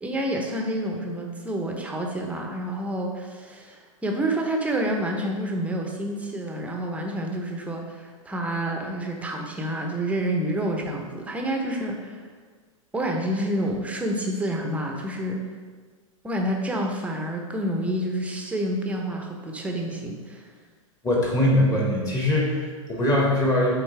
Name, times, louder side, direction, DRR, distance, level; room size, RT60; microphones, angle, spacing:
voice 1, 0.0-12.2 12.9-15.4 16.2-20.4, right 1 dB, 10° right, 1 dB, 0.8 m, -28 dB
voice 2, 21.0-23.8, left 1 dB, 20° left, -3 dB, 1.7 m, -22 dB
7.7 x 4.0 x 3.3 m, 1.5 s
hypercardioid pair, 115°, 17 cm